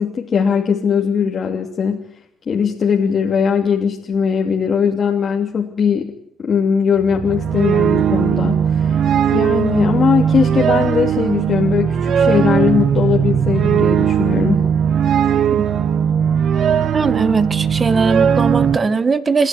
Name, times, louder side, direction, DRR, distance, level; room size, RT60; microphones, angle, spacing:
voice 1, 0.0-2.1 2.5-6.1 6.4-9.0 9.3-14.6, left 6 dB, 50° left, -1 dB, 3.0 m, -19 dB
sound 1, 7.0-18.8, right 8 dB, 65° right, 1.4 m, -17 dB
voice 2, 16.9-19.5, right 4 dB, 35° right, 13 dB, 1.8 m, -19 dB
28.5 x 12.5 x 9.7 m, 0.70 s
cardioid pair, 90°, 0 cm